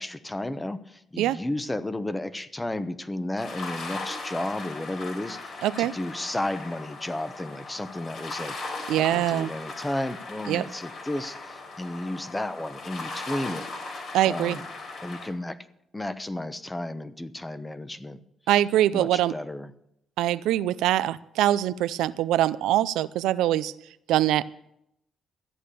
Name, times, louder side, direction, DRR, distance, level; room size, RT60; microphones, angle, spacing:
voice 1, 0.0-13.7 13.9-14.7 15.0-15.6 15.9-18.2 18.9-19.7, left 1 dB, 15° left, 13 dB, 0.8 m, -33 dB
sound 1, 3.4-15.3, left 3 dB, 65° left, 4.1 m, -38 dB
voice 2, 5.6-5.9 8.9-9.5 10.5-10.6 14.1-14.6 18.5-19.3 20.2-23.7 24.1-24.4, right 13 dB, 90° right, 16 dB, 0.4 m, -23 dB
14.0 x 8.6 x 6.7 m, 0.80 s
cardioid pair, 90°, 0 cm